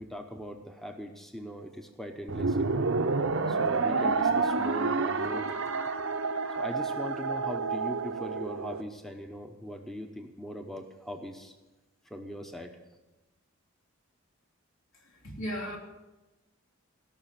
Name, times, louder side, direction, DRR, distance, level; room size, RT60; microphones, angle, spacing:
voice 1, 0.0-2.8 3.5-5.5 6.6-11.5 12.0-12.8, equal, ahead, 0.8 m, -40 dB
sound 1, 2.3-8.8, right 4 dB, 75° right, 0.8 m, -29 dB
voice 2, 15.2-15.8, equal, 75° left, 3.3 m, -35 dB
17.0 x 6.1 x 9.2 m
head